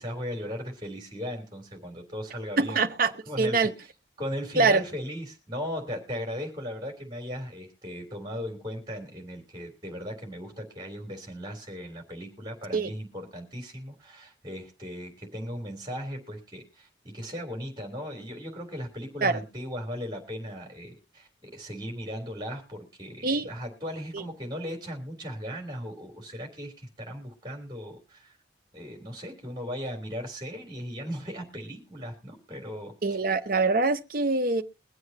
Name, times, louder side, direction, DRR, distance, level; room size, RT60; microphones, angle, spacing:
voice 1, 0.0-2.8 3.3-3.7 4.2-28.4 28.7-32.9, equal, 25° right, 3.4 m, -37 dB
voice 2, 2.6-3.7 4.6-4.8 12.7-12.9 19.2-19.4 23.2-23.5 24.1-24.2 33.0-34.6, right 3 dB, 50° right, 0.8 m, -24 dB
23.0 x 7.9 x 2.8 m
head